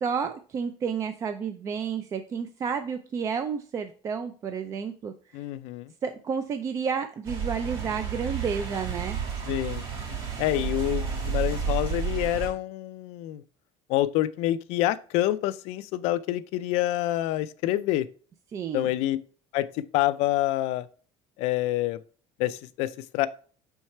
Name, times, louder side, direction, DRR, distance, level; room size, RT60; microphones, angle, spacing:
voice 1, 0.0-5.1 6.0-9.2 18.5-18.9, right 6 dB, 25° right, 8 dB, 0.4 m, -31 dB
voice 2, 5.3-5.9 9.5-9.8 10.4-13.4 13.9-18.1 18.7-19.2 19.5-20.9 21.4-22.0 22.4-23.3, left 14 dB, 70° left, 13 dB, 0.4 m, -27 dB
sound 1, 7.2-12.5, right 6 dB, 45° right, 2.6 m, -31 dB
5.6 x 4.5 x 4.3 m, 0.40 s
cardioid pair, 165°, 12 cm